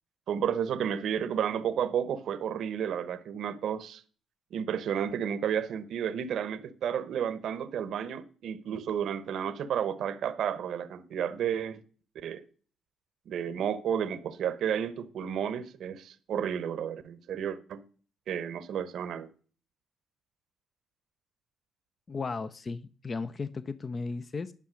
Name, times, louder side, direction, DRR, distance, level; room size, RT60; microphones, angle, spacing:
voice 1, 0.3-4.0 4.5-11.8 12.2-12.4 13.3-17.8 18.3-19.3, right 8 dB, 70° right, 0.9 m, -32 dB
voice 2, 22.1-24.5, left 4 dB, 35° left, 0.5 m, -35 dB
10.0 x 5.7 x 6.3 m
cardioid pair, 90°, 0 cm